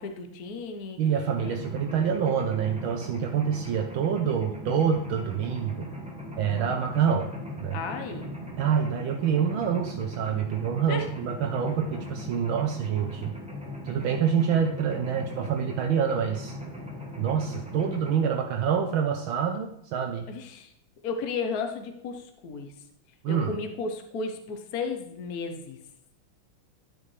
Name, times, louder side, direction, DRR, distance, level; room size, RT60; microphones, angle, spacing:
voice 1, 0.0-1.0 1.4-1.5 7.7-8.3 10.9-11.0 20.3-20.7 21.0-22.7 23.3-25.8, left 4 dB, 55° left, 5 dB, 1.2 m, -34 dB
voice 2, 1.0-5.9 6.3-7.3 7.6-7.8 8.6-13.3 13.8-16.5 17.2-20.3 23.2-23.6, right 7 dB, 75° right, 3 dB, 1.5 m, -26 dB
Mechanisms, 1.3-18.1, left 1 dB, 5° right, 1.2 m, -39 dB
12.5 x 5.3 x 3.2 m, 0.75 s
omnidirectional pair, 2.4 m